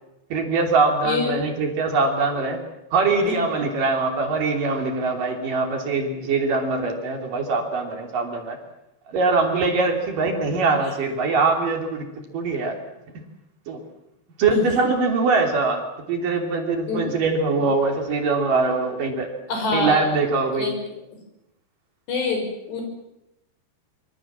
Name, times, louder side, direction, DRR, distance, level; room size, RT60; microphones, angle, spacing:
voice 1, 0.3-2.6 2.9-8.6 9.1-12.1 12.3-12.8 13.1-13.2 13.7-13.8 14.4-19.3 19.7-20.7, right 3 dB, 55° right, 4 dB, 4.5 m, -22 dB
voice 2, 1.0-1.4 14.5-14.6 16.9-17.2 19.5-20.0 20.5-20.7 22.1-22.4 22.7-22.8, left 4 dB, 80° left, 3 dB, 7.9 m, -25 dB
25.0 x 25.0 x 7.4 m, 0.86 s
omnidirectional pair, 4.8 m